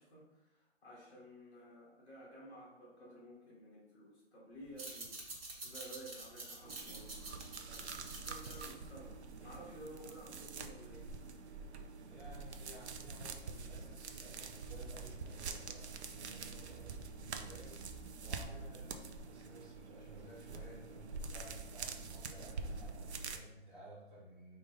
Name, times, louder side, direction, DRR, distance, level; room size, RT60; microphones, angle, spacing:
voice 1, 0.0-5.2 5.6-7.8 8.2-11.1, right 1 dB, 10° left, -8 dB, 1.4 m, -54 dB
sound 1, 4.6-9.8, right 2 dB, 60° right, 1.3 m, -48 dB
sound 2, 6.6-23.4, right 4 dB, 75° right, 0.6 m, -46 dB
voice 2, 7.7-8.2 12.0-24.6, right 1 dB, 30° right, -8 dB, 1.7 m, -55 dB
5.0 x 2.6 x 3.7 m, 0.91 s
hypercardioid pair, 175°, 34 cm